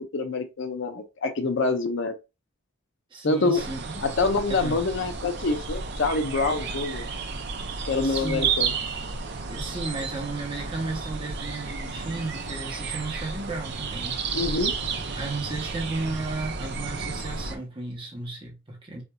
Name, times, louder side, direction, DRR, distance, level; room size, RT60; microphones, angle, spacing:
voice 1, 0.0-2.1 3.2-3.6 4.0-7.1 7.8-8.7 14.3-14.7, left 3 dB, 60° left, 0.5 m, -26 dB
voice 2, 3.1-4.0 4.5-4.8 7.7-8.5 9.4-14.2 15.1-19.0, right 3 dB, 25° right, 1.0 m, -34 dB
sound 1, 3.6-17.6, right 5 dB, 55° right, 0.5 m, -32 dB
4.3 x 2.6 x 2.2 m
head